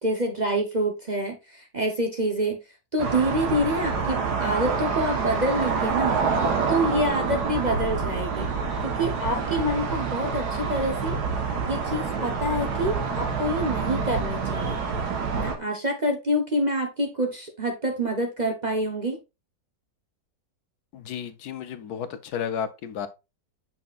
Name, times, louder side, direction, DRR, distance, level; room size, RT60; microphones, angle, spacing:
voice 1, 0.0-2.6 2.9-6.2 6.7-8.5 8.8-11.2 11.7-14.8 15.3-19.2, equal, 35° right, 0.8 m, -27 dB
sound 1, 3.0-15.6, right 5 dB, 75° right, 1.8 m, -27 dB
voice 2, 20.9-23.1, left 8 dB, 70° left, 1.2 m, -32 dB
7.5 x 5.7 x 2.4 m
omnidirectional pair, 1.8 m